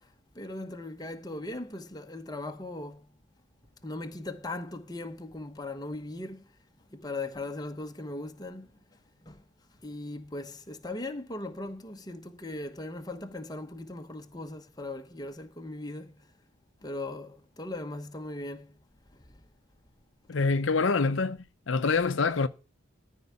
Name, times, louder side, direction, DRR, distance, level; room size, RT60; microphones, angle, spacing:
voice 1, 0.3-3.1 3.8-6.5 6.9-8.7 9.2-9.4 9.8-16.2 16.8-18.7 19.1-19.4, left 2 dB, 20° left, 1.0 m, -39 dB
voice 2, 20.3-21.4 21.7-22.5, left 4 dB, 70° left, 0.7 m, -25 dB
13.5 x 4.7 x 8.1 m
head